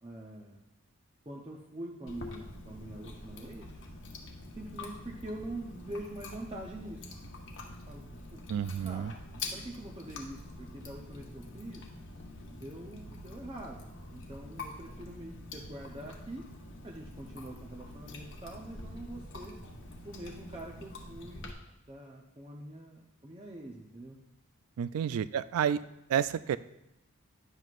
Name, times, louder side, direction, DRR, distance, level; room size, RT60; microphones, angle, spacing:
voice 1, 0.0-0.6 1.3-3.7 4.6-7.0 7.9-8.0 8.3-8.4 8.8-9.1 9.3-11.9 12.5-16.5 16.8-19.6 20.0-21.5 21.9-24.2, right 1 dB, 25° right, -2 dB, 0.7 m, -44 dB
Chewing mastication, 2.1-21.5, left 2 dB, 55° left, 1.0 m, -46 dB
voice 2, 8.5-9.1 24.8-25.8 26.1-26.6, right 8 dB, 75° right, 16 dB, 0.3 m, -30 dB
10.5 x 7.9 x 2.5 m, 0.88 s
head